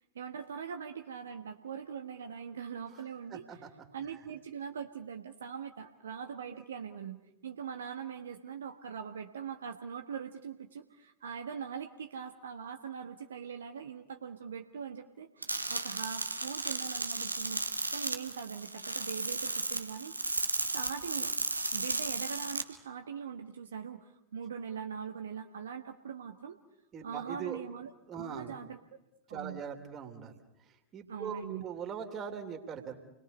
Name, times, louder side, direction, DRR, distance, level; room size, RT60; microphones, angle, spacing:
voice 1, 0.1-3.6 3.9-17.6 17.9-20.4 20.7-21.3 21.7-26.6 27.0-27.9 28.2-28.8 29.3-29.6 31.1-31.6, right 7 dB, 65° right, 5 dB, 1.3 m, -42 dB
voice 2, 3.3-3.7 26.9-27.6 28.1-28.5 29.3-30.4 30.9-32.9, right 7 dB, 30° right, 5 dB, 3.2 m, -40 dB
sound 1, 15.4-22.6, right 2 dB, 85° right, 1.6 m, -34 dB
30.0 x 21.5 x 5.4 m, 0.90 s
figure-of-eight pair, 90°, 0 cm